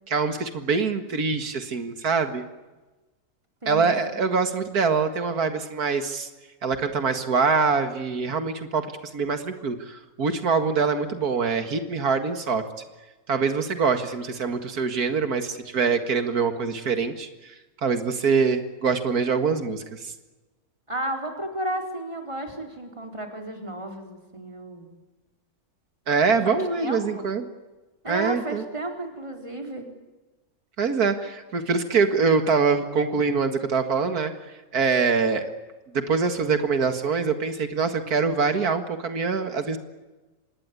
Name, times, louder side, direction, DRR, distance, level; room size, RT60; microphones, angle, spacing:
voice 1, 0.1-2.4 3.7-6.3 6.6-8.9 9.1-12.6 13.3-17.5 17.8-20.1 26.1-27.4 28.1-28.6 30.8-34.3 34.7-35.4 35.9-39.8, right 5 dB, 85° right, 8 dB, 2.4 m, -24 dB
voice 2, 3.6-4.3 20.9-24.9 26.4-27.3 28.0-29.9, right 1 dB, 20° right, 3 dB, 4.5 m, -33 dB
26.0 x 20.5 x 9.7 m, 1.1 s
omnidirectional pair, 1.6 m